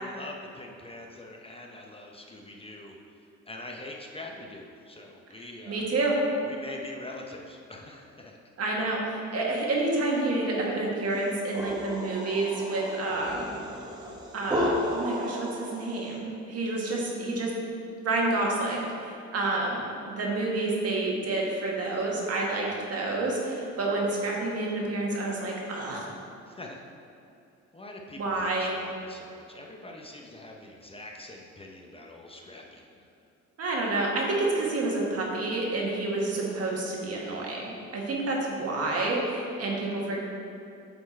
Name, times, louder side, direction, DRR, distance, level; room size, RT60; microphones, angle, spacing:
voice 1, 0.0-2.9 3.5-5.9 6.5-8.4 26.5-26.8 27.7-32.8, left 2 dB, 20° left, 0 dB, 0.7 m, -44 dB
voice 2, 5.7-6.2 8.6-13.5 14.3-17.5 18.0-26.1 28.2-28.8 33.6-40.2, right 2 dB, 55° right, -2 dB, 1.6 m, -29 dB
sound 1, 11.2-16.1, left 1 dB, 15° right, 1.0 m, -33 dB
8.0 x 4.4 x 4.3 m, 2.6 s
cardioid pair, 90°, 30 cm